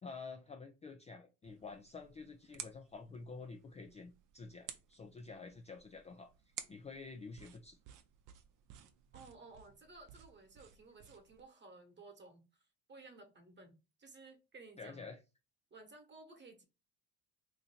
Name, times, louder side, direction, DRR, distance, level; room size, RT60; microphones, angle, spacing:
voice 1, 0.0-6.3 6.7-7.8 14.8-15.2, left 4 dB, 20° left, 0.4 m, -49 dB
sound 1, 1.4-11.4, right 9 dB, 50° right, 0.7 m, -55 dB
voice 2, 9.1-15.1 15.7-16.6, right 3 dB, 25° right, 1.2 m, -56 dB
2.8 x 2.5 x 4.2 m
supercardioid pair, 85°, 39 cm